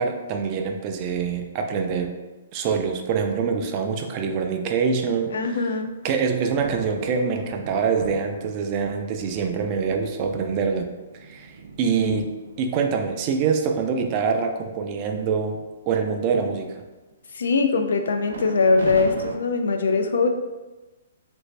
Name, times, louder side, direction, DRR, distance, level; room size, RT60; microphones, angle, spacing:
voice 1, 0.0-2.1 2.5-5.4 6.0-10.9 11.1-12.3 12.6-15.6 15.9-16.8, right 5 dB, 35° right, 4 dB, 0.4 m, -25 dB
voice 2, 5.3-5.9 17.3-20.3, left 4 dB, 80° left, 6 dB, 0.4 m, -21 dB
sound 1, 6.0-9.0 9.7-9.8 10.3-13.9 14.4-14.6 14.9-15.3 15.7-16.4 18.3-19.4, right 3 dB, 90° right, 0.5 m, -38 dB
3.2 x 2.6 x 3.1 m, 1.1 s
hypercardioid pair, 150°, 0 cm